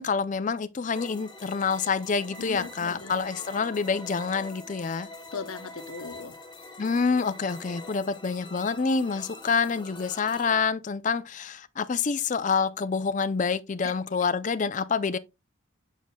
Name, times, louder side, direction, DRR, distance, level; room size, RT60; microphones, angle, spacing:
voice 1, 0.0-5.1 6.8-15.2, left 5 dB, 40° left, 0.4 m, -27 dB
sound 1, 0.9-10.6, left 2 dB, 20° left, 0.9 m, -44 dB
voice 2, 2.4-3.3 5.3-6.4 13.8-13.9, left 5 dB, 85° left, 0.9 m, -38 dB
7.3 x 6.3 x 2.2 m
head